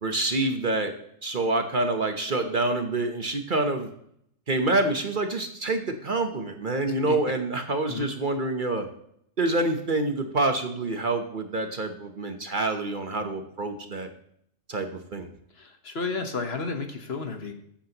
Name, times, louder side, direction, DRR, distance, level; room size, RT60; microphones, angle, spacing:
voice 1, 0.0-0.9 1.2-3.9 4.5-8.9 9.4-14.1 14.7-15.3, right 2 dB, 40° right, 6 dB, 1.1 m, -27 dB
voice 2, 6.8-7.2 7.9-8.1 15.5-17.5, left 4 dB, 55° left, 6 dB, 1.4 m, -32 dB
13.5 x 8.7 x 3.0 m, 0.70 s
omnidirectional pair, 1.3 m